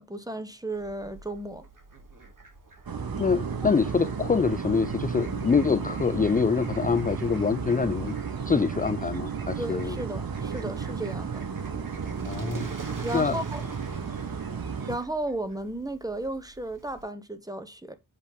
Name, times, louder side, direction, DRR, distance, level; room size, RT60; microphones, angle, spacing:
voice 1, 0.0-1.6 9.6-11.4 13.0-13.7 14.9-17.9, right 1 dB, 10° right, 1.0 m, -34 dB
Fowl, 0.7-17.0, right 2 dB, 65° right, 2.3 m, -48 dB
sound 1, 2.9-15.0, right 6 dB, 80° right, 1.0 m, -33 dB
voice 2, 3.2-8.2 8.5-10.0 12.2-12.7 13.1-13.4, left 5 dB, 25° left, 0.4 m, -25 dB
8.2 x 3.3 x 5.5 m
wide cardioid pair, 70°, 35 cm